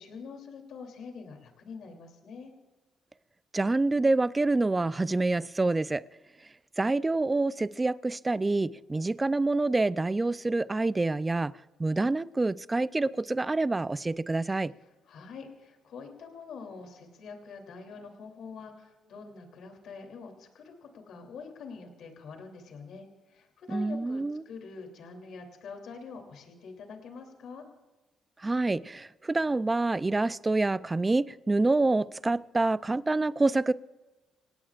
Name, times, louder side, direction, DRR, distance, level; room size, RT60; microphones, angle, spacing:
voice 1, 0.0-2.5 14.8-27.6, left 5 dB, 70° left, 3 dB, 3.1 m, -45 dB
voice 2, 3.5-6.0 6.8-11.5 11.8-14.7 23.7-24.4 28.4-33.7, right 2 dB, 20° right, 16 dB, 0.5 m, -27 dB
27.5 x 17.5 x 2.5 m, 1.1 s
cardioid pair, 90°, 0 cm